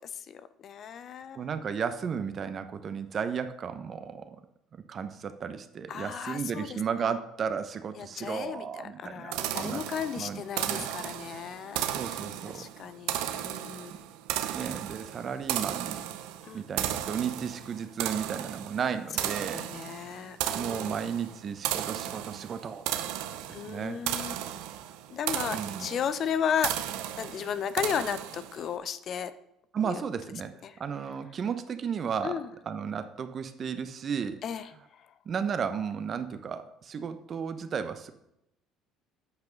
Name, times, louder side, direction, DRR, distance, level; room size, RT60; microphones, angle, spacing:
voice 1, 0.0-1.5 5.9-7.1 8.0-12.2 12.5-14.1 16.4-16.6 19.2-21.0 23.5-24.6 25.1-26.8 27.2-29.3 29.8-30.0 30.6-30.8 32.2-32.5 34.4-35.1, left 8 dB, 55° left, 13 dB, 0.6 m, -35 dB
voice 2, 1.4-4.4 4.9-9.8 10.2-10.4 10.7-10.9 11.9-12.7 14.5-16.2 16.5-19.6 20.5-23.4 23.7-24.0 25.5-25.9 29.7-30.5 30.8-34.4 35.3-38.1, right 7 dB, 45° right, 10 dB, 0.9 m, -34 dB
sound 1, 9.3-28.7, right 12 dB, 80° right, 0.6 m, -35 dB
8.2 x 6.0 x 5.2 m, 0.82 s
supercardioid pair, 80°, 0 cm